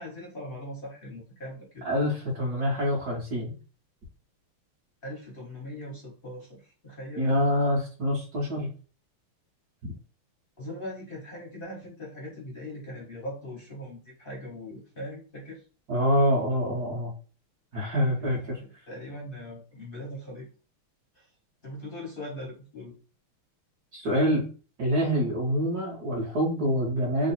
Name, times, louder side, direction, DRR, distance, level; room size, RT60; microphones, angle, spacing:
voice 1, 0.0-1.9 5.0-7.3 10.6-15.6 18.2-20.5 21.1-21.3 21.6-22.9, left 1 dB, 50° left, -2 dB, 0.6 m, -40 dB
voice 2, 1.8-3.5 7.2-8.7 9.8-9.9 15.9-17.1 17.7-18.6 23.9-24.5 24.8-27.3, equal, 55° right, -3 dB, 1.3 m, -26 dB
3.7 x 2.1 x 4.2 m, 0.36 s
omnidirectional pair, 2.4 m